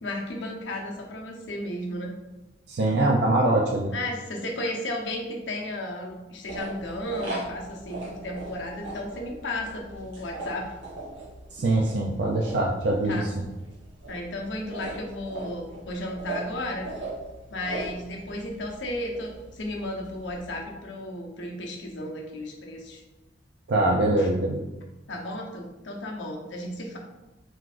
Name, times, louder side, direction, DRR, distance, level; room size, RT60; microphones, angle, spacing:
voice 1, 0.0-2.1 3.9-10.7 13.0-13.3 14.1-16.9 17.5-23.0 24.2-24.3 25.1-27.0, left 1 dB, 85° left, 0 dB, 0.8 m, -34 dB
voice 2, 2.7-3.9 11.5-13.3 23.7-24.7, right 2 dB, 65° right, 0 dB, 0.4 m, -23 dB
sound 1, 6.4-20.6, right 2 dB, 85° right, 1.1 m, -40 dB
4.4 x 3.9 x 2.5 m, 1.0 s
head